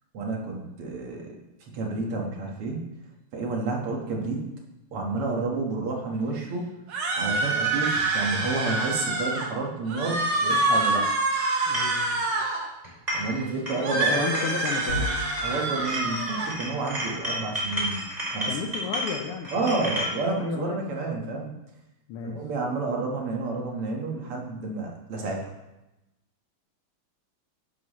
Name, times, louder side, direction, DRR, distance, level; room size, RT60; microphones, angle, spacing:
voice 1, 0.1-1.4 1.7-2.9 3.3-4.5 4.9-6.8 7.2-11.0 13.1-14.2 14.5-14.6 15.4-18.0 18.3-18.8 19.5-21.5 22.2-25.5, right 3 dB, 85° right, 0 dB, 2.5 m, -30 dB
sound 1, 6.9-9.5 9.9-12.7 13.8-16.5, right 2 dB, 60° right, 1.8 m, -26 dB
voice 2, 11.7-12.3 13.9-15.1 18.5-20.1 20.4-20.8 22.1-22.4, left 6 dB, 85° left, 1 dB, 1.8 m, -33 dB
sound 2, 11.7-12.0 12.8-13.4 13.7-15.5 15.8-20.1, equal, 20° right, 2.9 m, -32 dB
sound 3, 14.9-19.2, left 1 dB, 65° left, 4.4 m, -39 dB
11.0 x 10.5 x 3.2 m, 0.99 s
omnidirectional pair, 2.4 m